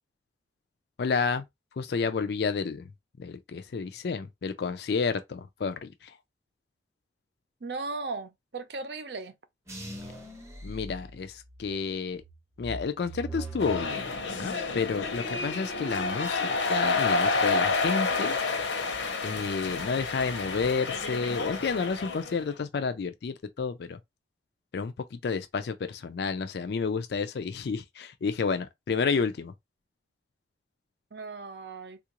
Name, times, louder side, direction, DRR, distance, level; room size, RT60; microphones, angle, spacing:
voice 1, 1.0-1.4 1.8-2.9 3.2-6.2 10.6-12.2 12.6-18.4 19.2-24.0 24.7-29.5, left 5 dB, 60° left, 0.4 m, -30 dB
voice 2, 7.6-9.3 31.1-32.0, right 3 dB, 65° right, 0.6 m, -37 dB
sound 1, 9.7-11.7 12.2-14.8 15.1-15.6, right 1 dB, 15° right, 0.8 m, -41 dB
sound 2, 13.6-22.4, left 3 dB, 85° left, 0.8 m, -29 dB
3.5 x 2.4 x 2.9 m
head